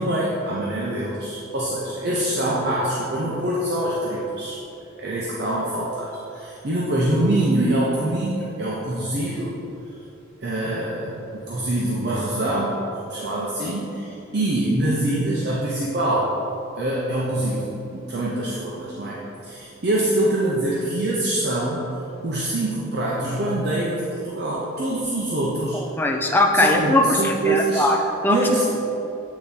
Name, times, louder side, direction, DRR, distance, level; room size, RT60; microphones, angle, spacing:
voice 1, 0.0-4.6 5.0-9.5 10.4-16.4 16.8-21.9 22.2-25.8 26.5-27.8 28.3-28.6, right 1 dB, 50° right, -6 dB, 0.7 m, -24 dB
voice 2, 25.7-28.4, left 1 dB, 10° left, 2 dB, 0.4 m, -20 dB
8.1 x 3.5 x 4.1 m, 2.9 s
head